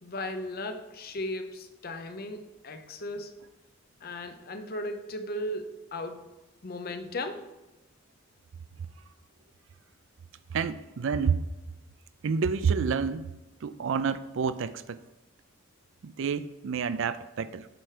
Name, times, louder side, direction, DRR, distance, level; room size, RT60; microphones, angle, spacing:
voice 1, 0.0-3.4 4.0-6.3 6.6-7.5, left 1 dB, 45° left, 7 dB, 0.7 m, -36 dB
voice 2, 10.5-11.5 12.2-13.4 13.6-15.0 16.0-17.7, right 6 dB, 60° right, 14 dB, 0.4 m, -29 dB
7.9 x 4.4 x 5.0 m, 1.0 s
head